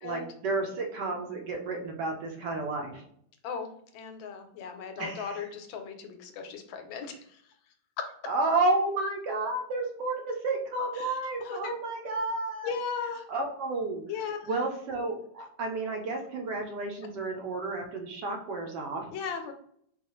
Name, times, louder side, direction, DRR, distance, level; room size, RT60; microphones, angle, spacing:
voice 1, 0.0-3.0 5.0-5.3 8.3-12.7 13.3-14.0 14.4-19.0, right 2 dB, 70° right, 2 dB, 1.1 m, -31 dB
voice 2, 3.4-7.2 8.1-8.2 11.0-11.7 12.6-13.2 14.1-14.5 19.1-19.5, left 6 dB, 80° left, 6 dB, 1.3 m, -37 dB
3.9 x 2.3 x 3.0 m, 0.65 s
omnidirectional pair, 2.1 m